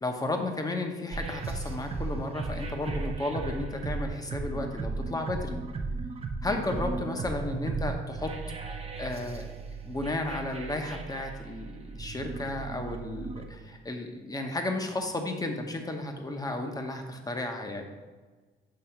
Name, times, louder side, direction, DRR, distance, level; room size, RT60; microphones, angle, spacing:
voice 1, 0.0-5.6 6.4-8.3 9.0-9.5 9.8-17.9, left 2 dB, 20° left, 4 dB, 0.9 m, -33 dB
sound 1, 1.1-13.5, right 3 dB, 30° right, 0.8 m, -36 dB
6.7 x 3.4 x 5.7 m, 1.3 s
cardioid pair, 90°, 20 cm